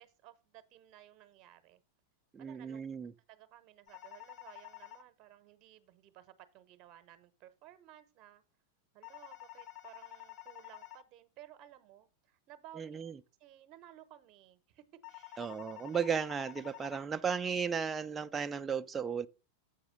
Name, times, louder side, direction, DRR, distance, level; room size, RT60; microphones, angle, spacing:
voice 1, 0.0-1.8 2.4-2.8 3.3-8.4 8.9-13.0 13.4-15.4, right 12 dB, 40° right, 0.9 m, -57 dB
voice 2, 2.3-3.1 12.8-13.2 15.4-19.3, right 6 dB, 15° right, 0.4 m, -35 dB
sound 1, 3.9-5.0 9.0-11.0 15.0-17.0, left 17 dB, 35° left, 0.7 m, -50 dB
8.0 x 4.8 x 5.1 m
figure-of-eight pair, 90°, 0 cm